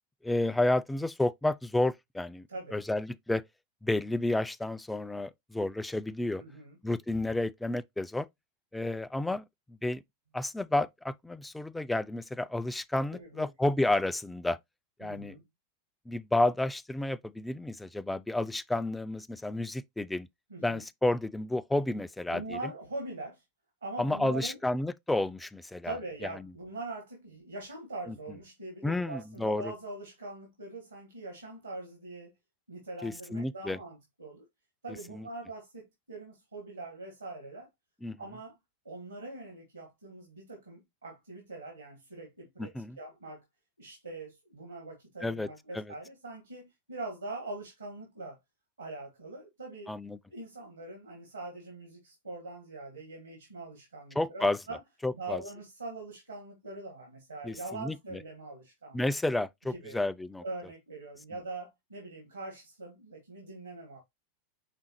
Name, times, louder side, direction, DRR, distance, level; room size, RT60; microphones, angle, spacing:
voice 1, 0.2-3.4 3.8-6.4 6.8-8.3 8.7-10.0 10.3-14.6 15.0-15.4 16.1-20.3 20.6-22.7 24.0-26.0 28.1-28.2 28.8-29.7 33.0-33.8 35.1-35.2 38.0-38.2 42.6-43.0 45.2-45.5 45.7-45.8 49.9-50.2 54.2-54.6 55.0-55.4 57.4-58.2 58.9-60.4, left 2 dB, 5° left, 0.3 m, -31 dB
voice 2, 6.4-6.8 13.1-13.5 15.0-15.4 20.5-20.8 22.3-23.4 23.8-24.6 25.8-32.3 32.7-34.4 34.8-37.7 38.2-38.5 38.8-42.7 43.0-43.4 43.8-48.4 48.8-49.9 50.3-54.8 55.1-59.0 59.7-60.0 60.4-64.0, right 2 dB, 85° right, 1.5 m, -42 dB
5.1 x 3.6 x 2.9 m
figure-of-eight pair, 90°, 0 cm